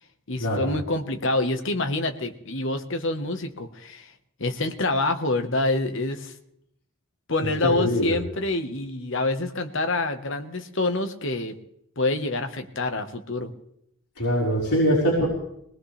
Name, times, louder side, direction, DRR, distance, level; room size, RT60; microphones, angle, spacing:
voice 1, 0.3-4.1 4.4-6.3 7.3-11.6 12.0-13.5, left 2 dB, 55° left, 6 dB, 1.3 m, -26 dB
voice 2, 7.4-8.2 14.2-15.3, equal, 80° left, -6 dB, 4.5 m, -23 dB
22.0 x 19.0 x 3.4 m, 0.74 s
head